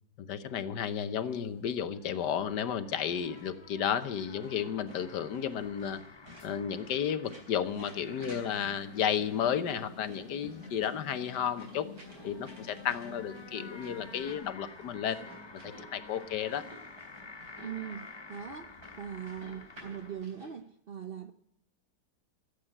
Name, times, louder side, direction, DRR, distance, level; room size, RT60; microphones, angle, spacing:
voice 1, 0.2-6.0 6.4-11.9 12.2-15.2 15.5-16.6, left 8 dB, 85° left, 12 dB, 1.6 m, -33 dB
sound 1, 1.2-20.2, left 3 dB, 25° left, 0.5 m, -52 dB
sound 2, 3.1-20.5, equal, 70° right, 4.7 m, -54 dB
sound 3, 6.4-14.3, left 4 dB, 45° left, 2.5 m, -50 dB
voice 2, 17.6-21.3, right 8 dB, 55° right, 9 dB, 0.6 m, -41 dB
15.0 x 8.1 x 9.0 m, 0.79 s
omnidirectional pair, 1.8 m